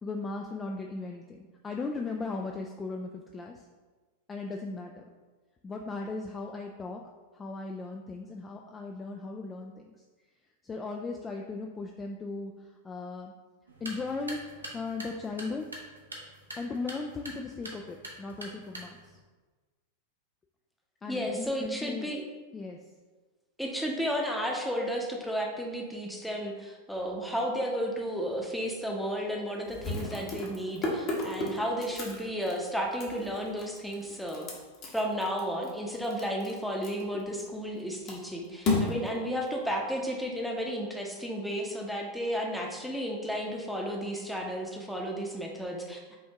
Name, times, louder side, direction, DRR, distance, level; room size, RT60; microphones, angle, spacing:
voice 1, 0.0-3.7 4.3-5.0 5.6-7.0 7.3-9.9 10.6-13.3 13.8-15.7 16.6-19.1 21.0-22.1 22.5-22.8 37.1-37.2, left 3 dB, 20° left, 1 dB, 0.3 m, -37 dB
sound 1, 13.7-19.2, right 1 dB, 80° right, 0.7 m, -45 dB
voice 2, 21.1-22.2 23.6-34.5 34.9-46.2, equal, ahead, 0 dB, 0.7 m, -33 dB
sound 2, 28.3-28.4 28.7-28.8 29.6-37.8 38.1-40.2, left 2 dB, 40° left, 1.1 m, -34 dB
5.5 x 2.7 x 3.4 m, 1.3 s
figure-of-eight pair, 90°, 0 cm